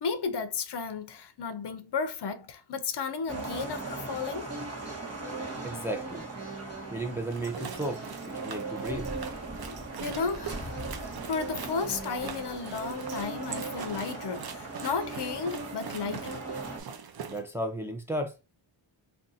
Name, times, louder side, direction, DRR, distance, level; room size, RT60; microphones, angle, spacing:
voice 1, 0.0-4.5 10.0-10.7 11.3-16.4, left 5 dB, 60° left, 0.6 m, -33 dB
sound 1, 3.3-16.8, right 3 dB, 30° right, 1.0 m, -38 dB
voice 2, 5.6-6.3 6.9-8.0 8.4-9.1 17.3-18.3, right 1 dB, 5° right, 0.5 m, -33 dB
sound 2, 7.2-17.4, right 7 dB, 50° right, 0.6 m, -43 dB
2.6 x 2.3 x 3.9 m
wide cardioid pair, 110°, 48 cm